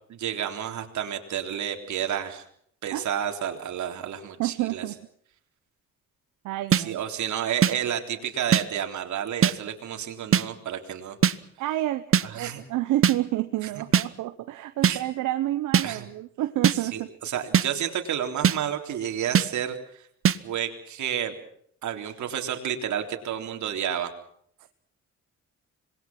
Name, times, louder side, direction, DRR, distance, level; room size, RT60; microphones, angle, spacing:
voice 1, 0.1-2.4 2.8-4.8 6.8-11.2 12.2-12.6 14.8-15.1 15.8-16.1 16.9-20.0 20.4-21.4 21.8-24.1, right 9 dB, 70° right, 5 dB, 3.6 m, -30 dB
voice 2, 4.4-5.1 6.4-7.0 11.6-17.1 24.6-24.7, right 15 dB, 90° right, 10 dB, 1.1 m, -29 dB
sound 1, 6.7-6.8 7.6-7.7 8.5-8.6 9.4-9.5 10.3-10.4 11.2-11.3 12.1-12.2 13.0-13.1 13.9-14.1 14.8-15.0 15.7-15.9 16.6-16.8 17.5-17.7 18.4-18.6 19.3-19.5 20.2-20.4, right 8 dB, 45° right, 1.1 m, -19 dB
26.5 x 21.0 x 6.1 m, 0.66 s
cardioid pair, 90°, 30 cm